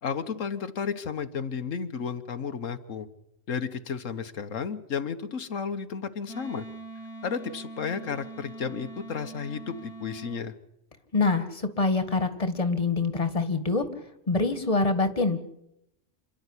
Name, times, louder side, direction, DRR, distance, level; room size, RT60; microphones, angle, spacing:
voice 1, 0.0-3.1 3.5-6.6 7.2-10.5, left 6 dB, 90° left, 8 dB, 1.6 m, -33 dB
Wind instrument woodwind instrument, 6.3-10.4, right 2 dB, 15° right, 2.5 m, -42 dB
voice 2, 11.1-13.8 14.3-15.4, left 3 dB, 30° left, 10 dB, 2.0 m, -25 dB
28.0 x 12.0 x 9.9 m, 0.81 s
omnidirectional pair, 1.3 m